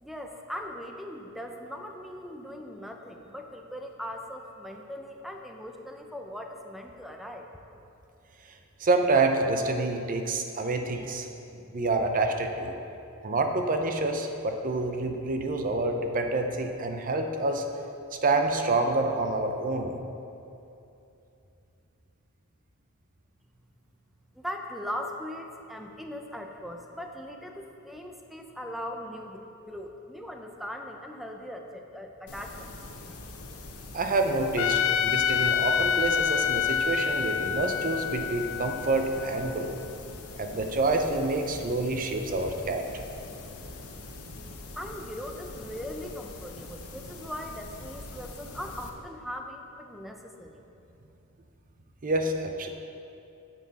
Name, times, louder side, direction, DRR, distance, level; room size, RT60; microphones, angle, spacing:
voice 1, 0.0-7.6 24.3-32.7 44.8-50.6, equal, ahead, 3 dB, 0.6 m, -40 dB
voice 2, 8.8-11.3 11.5-12.7 13.2-17.6 18.2-20.0 33.9-39.7 40.4-43.0 52.0-52.7, right 2 dB, 40° right, 5 dB, 0.7 m, -27 dB
sound 1, 32.3-48.9, left 2 dB, 80° left, 0.9 m, -43 dB
Trumpet, 34.6-39.8, left 8 dB, 65° left, 0.3 m, -27 dB
9.3 x 7.2 x 4.2 m, 2.8 s
head